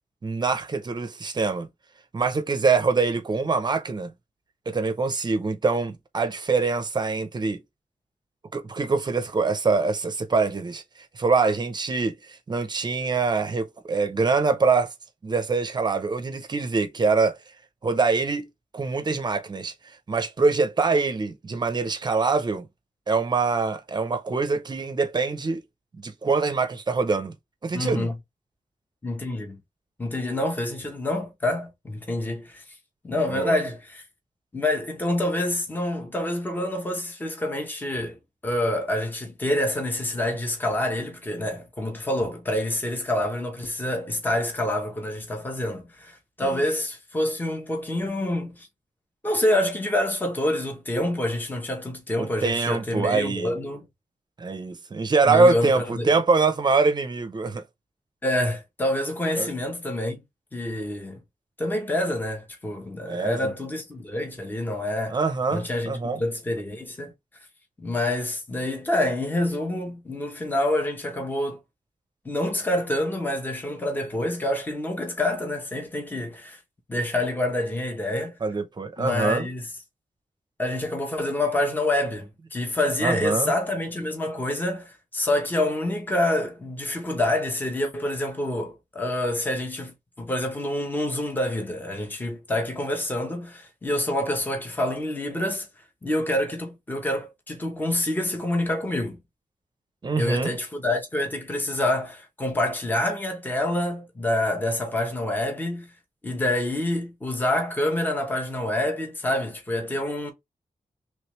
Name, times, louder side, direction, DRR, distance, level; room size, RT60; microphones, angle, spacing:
voice 1, 0.2-1.7 2.1-4.1 4.7-7.6 8.5-10.8 11.1-14.9 15.2-17.4 17.8-18.5 18.7-19.7 20.1-22.7 23.1-25.6 25.9-27.3 27.6-28.1 33.3-33.6 46.4-46.6 52.2-53.5 54.4-57.6 59.4-59.5 63.1-63.5 65.1-66.2 78.4-79.5 83.0-83.5 100.0-100.6, right 4 dB, 35° right, 0.6 m, -24 dB
voice 2, 27.7-28.2 29.0-29.6 30.0-32.6 33.0-34.0 34.5-38.2 38.4-48.7 49.2-53.9 55.3-56.1 58.2-60.2 60.5-61.2 61.6-65.2 65.5-67.1 67.8-71.6 72.2-76.6 76.9-78.4 79.0-79.7 80.6-95.7 96.0-99.2 100.2-105.9 106.2-110.3, left 1 dB, 15° left, 0.8 m, -27 dB
3.2 x 3.2 x 3.0 m
wide cardioid pair, 165°, 13 cm